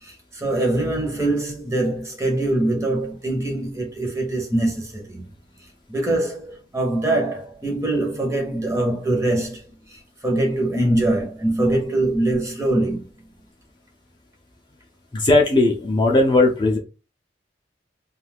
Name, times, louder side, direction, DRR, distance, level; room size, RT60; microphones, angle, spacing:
voice 1, 0.0-5.2 5.9-9.6 9.9-13.0, right 1 dB, 15° right, 0.8 m, -23 dB
voice 2, 15.1-16.8, left 2 dB, 25° left, 0.5 m, -17 dB
2.6 x 2.3 x 3.4 m
head